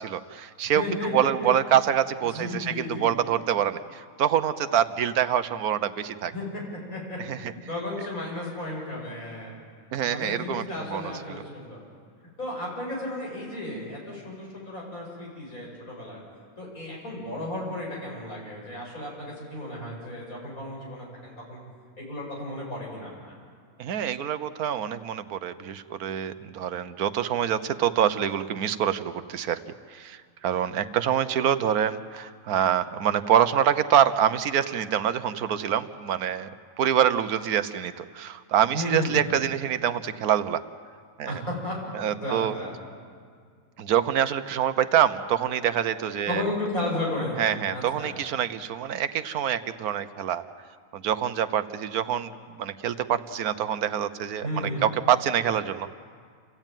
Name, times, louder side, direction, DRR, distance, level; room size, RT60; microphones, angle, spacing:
voice 1, 0.0-0.8 1.1-6.3 7.3-7.5 9.9-10.6 10.9-11.0 11.3-11.4 23.8-29.6 29.9-36.5 36.8-40.6 41.2-41.4 41.9-42.5 43.8-46.4 47.4-50.5 50.9-55.9, right 9 dB, 85° right, 12 dB, 1.3 m, -25 dB
voice 2, 0.6-1.5 2.3-3.1 6.3-6.6 6.9-9.5 10.1-11.8 12.4-16.2 16.6-21.6 22.0-23.4 38.7-39.2 41.3-41.8 42.2-42.8 46.3-48.2 54.4-54.9, left 1 dB, 70° left, -3 dB, 7.3 m, -34 dB
27.5 x 15.5 x 9.1 m, 2.1 s
omnidirectional pair, 1.5 m